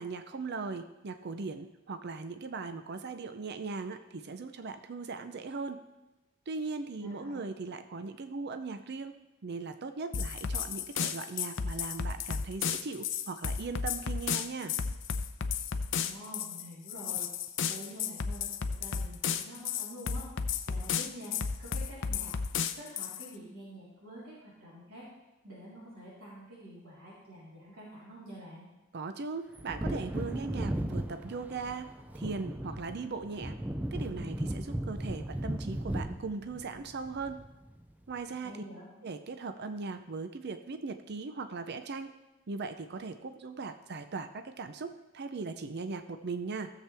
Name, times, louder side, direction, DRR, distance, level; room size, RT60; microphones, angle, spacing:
voice 1, 0.0-5.8 6.5-9.1 9.4-14.7 28.9-33.5 33.9-37.4 38.1-38.6 39.0-42.1 42.5-46.7, right 4 dB, 55° right, 9 dB, 0.6 m, -39 dB
voice 2, 7.0-7.4 15.9-17.3 17.7-20.3 20.7-22.4 22.7-25.1 25.4-28.7 38.4-38.9, equal, 85° right, -9 dB, 3.9 m, -47 dB
sound 1, 10.1-23.3, left 6 dB, 65° left, 0.6 m, -33 dB
Wind / Thunder, 29.5-37.8 38.1-38.2, right 1 dB, 10° right, 0.4 m, -36 dB
15.5 x 7.4 x 3.5 m, 1.0 s
head